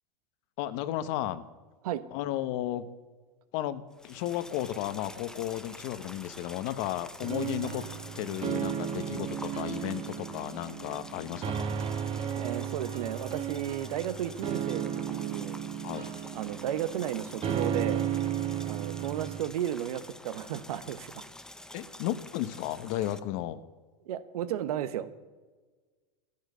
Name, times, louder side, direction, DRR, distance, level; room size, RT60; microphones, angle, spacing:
voice 1, 0.6-1.4 2.1-2.9 3.5-7.9 8.2-11.7 15.8-16.1 21.7-23.6, left 13 dB, 55° left, 13 dB, 1.0 m, -34 dB
sound 1, 3.9-23.2, left 1 dB, 5° left, 0.6 m, -48 dB
sound 2, 7.2-19.4, right 9 dB, 30° right, 1.2 m, -34 dB
voice 2, 12.4-15.6 16.3-18.1 18.6-21.2 24.1-25.1, right 10 dB, 80° right, 13 dB, 1.0 m, -34 dB
13.5 x 10.5 x 6.7 m, 1.3 s
supercardioid pair, 125°, 19 cm